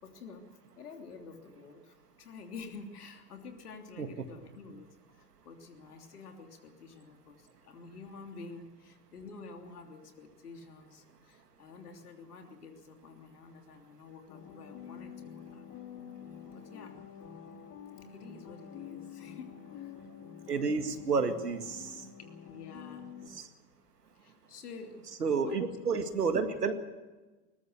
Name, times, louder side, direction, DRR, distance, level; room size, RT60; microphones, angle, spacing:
voice 1, 0.0-15.6 16.5-17.0 18.1-19.9 22.5-23.1 24.2-25.1 25.4-25.6 26.3-26.6, left 4 dB, 75° left, 4 dB, 3.2 m, -49 dB
sound 1, 14.3-23.3, left 8 dB, 40° left, 2.7 m, -48 dB
voice 2, 20.5-21.9 23.3-23.4 25.2-26.7, right 5 dB, 85° right, 8 dB, 2.1 m, -30 dB
21.0 x 20.0 x 6.9 m, 1.2 s
figure-of-eight pair, 85°, 46 cm